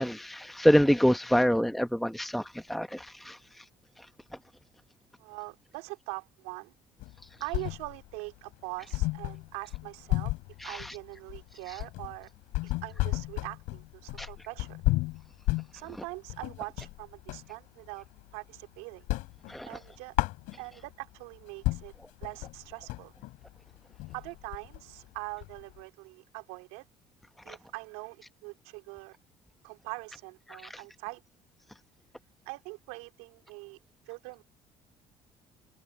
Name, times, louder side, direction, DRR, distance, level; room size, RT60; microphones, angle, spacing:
voice 1, 0.0-3.4 10.6-10.9 14.2-14.3 19.5-19.8 27.5-27.6 30.7-30.8, equal, ahead, 0.9 m, -26 dB
voice 2, 5.2-6.7 7.4-10.3 10.6-12.3 12.6-14.8 15.7-18.1 18.3-19.0 19.6-20.1 20.6-21.9 22.2-23.1 24.1-26.8 27.4-29.2 29.6-31.2 32.4-33.8 34.0-34.4, right 26 dB, 85° right, 3.3 m, -42 dB
sound 1, 7.0-8.2 8.5-8.6 8.9-17.5 17.9-18.7 18.9-20.9 21.4-21.5 21.6-25.8, left 21 dB, 80° left, 7.1 m, -33 dB
open air
supercardioid pair, 75°, 13 cm